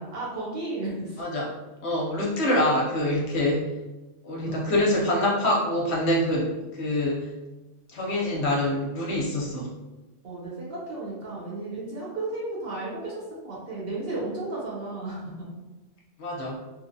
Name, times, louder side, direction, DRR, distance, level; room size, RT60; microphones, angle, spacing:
voice 1, 0.0-1.2 4.4-4.6 10.2-15.5, right 2 dB, 55° right, -5 dB, 0.9 m, -34 dB
voice 2, 1.2-1.5 1.8-3.6 4.2-7.3 7.9-9.7 16.2-16.6, left 1 dB, 65° left, -4 dB, 0.8 m, -25 dB
2.9 x 2.0 x 2.5 m, 1.1 s
omnidirectional pair, 1.3 m